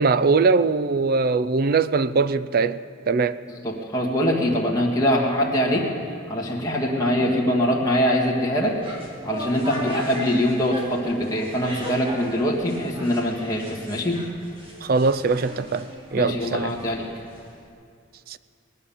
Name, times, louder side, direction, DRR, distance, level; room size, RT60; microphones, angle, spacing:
voice 1, 0.0-3.4 7.2-7.3 14.8-16.8 18.3-18.4, right 4 dB, 45° right, 0.4 m, -22 dB
voice 2, 3.5-5.9 6.3-8.8 9.2-14.2 16.1-17.1, equal, 15° left, 1.9 m, -23 dB
sound 1, 8.6-17.7, equal, 25° right, 1.9 m, -38 dB
20.5 x 9.7 x 7.2 m
head